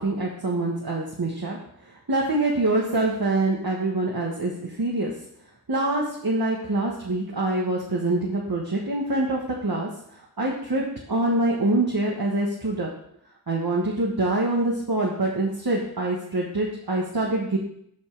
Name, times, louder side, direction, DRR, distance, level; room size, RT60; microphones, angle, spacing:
voice 1, 0.0-1.6 2.1-5.1 5.7-12.9 13.5-17.6, right 2 dB, 70° right, -2 dB, 1.6 m, -25 dB
8.3 x 5.5 x 6.6 m, 0.71 s
wide cardioid pair, 40°, 37 cm